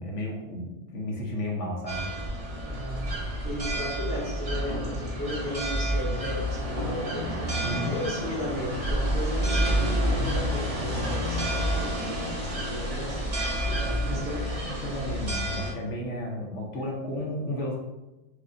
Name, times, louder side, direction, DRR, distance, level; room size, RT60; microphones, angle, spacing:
voice 1, 0.0-2.1 7.6-7.9 10.2-10.4 13.7-17.7, left 1 dB, 60° left, -1 dB, 0.9 m, -33 dB
sound 1, 1.9-15.7, equal, 35° right, 0.7 m, -29 dB
voice 2, 2.7-3.1 3.4-12.2 12.5-13.3 14.1-14.4 16.8-16.9, left 1 dB, 60° right, -8 dB, 1.3 m, -35 dB
4.9 x 2.2 x 3.7 m, 1.0 s
omnidirectional pair, 1.6 m